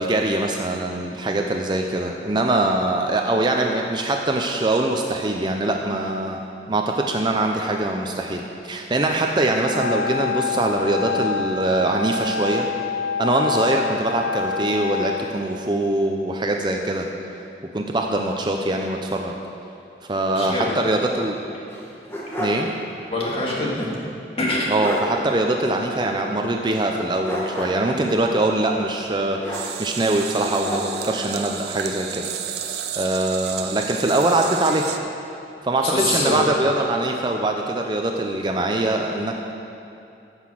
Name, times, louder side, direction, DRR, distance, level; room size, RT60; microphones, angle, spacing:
voice 1, 0.0-6.4 6.7-12.7 13.2-17.1 17.6-19.4 20.1-21.4 22.4-22.7 24.7-32.6 33.0-34.9 35.6-39.3, right 2 dB, 25° right, 2 dB, 0.5 m, -23 dB
Wind instrument woodwind instrument, 9.6-15.2, left 6 dB, 70° left, 0.6 m, -27 dB
voice 2, 20.3-20.9 23.1-24.0 24.4-24.7 35.8-36.4, left 1 dB, 30° left, -4 dB, 2.1 m, -24 dB
sound 1, 21.7-22.7 23.0-23.1 24.4-24.5 24.8-25.1 27.2-28.0 29.4-30.0 30.3-31.2, equal, 15° left, 1.4 m, -30 dB
sound 2, 29.5-35.0, right 9 dB, 65° right, 0.6 m, -32 dB
14.5 x 5.9 x 6.2 m, 2.6 s
head